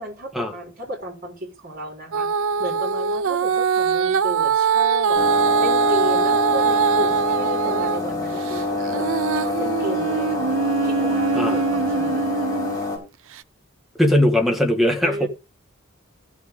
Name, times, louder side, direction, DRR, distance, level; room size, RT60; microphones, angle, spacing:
voice 1, 0.0-2.3 2.6-5.2 5.6-9.1 9.3-10.5 10.8-12.2 15.0-15.3, equal, 45° right, 4.2 m, -33 dB
Female singing, 2.1-8.0 8.5-12.8 13.4-13.5, right 5 dB, 70° right, 0.5 m, -22 dB
sound 1, 5.1-13.0, left 2 dB, 15° left, 5.9 m, -27 dB
voice 2, 14.0-15.3, left 1 dB, ahead, 1.9 m, -19 dB
15.5 x 6.3 x 3.9 m
head